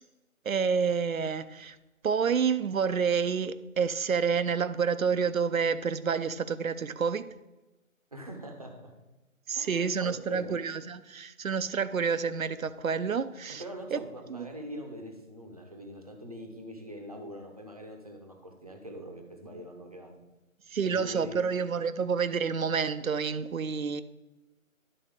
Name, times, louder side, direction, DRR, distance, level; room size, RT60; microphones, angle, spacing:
voice 1, 0.4-1.8 2.0-7.3 9.5-13.6 13.9-14.0 14.3-14.5 20.7-24.0, right 6 dB, 70° right, 0.6 m, -29 dB
voice 2, 8.1-8.9 9.5-10.7 13.6-20.1 20.8-21.4, equal, 25° right, 0.8 m, -43 dB
11.0 x 4.3 x 5.0 m
figure-of-eight pair, 165°, 42 cm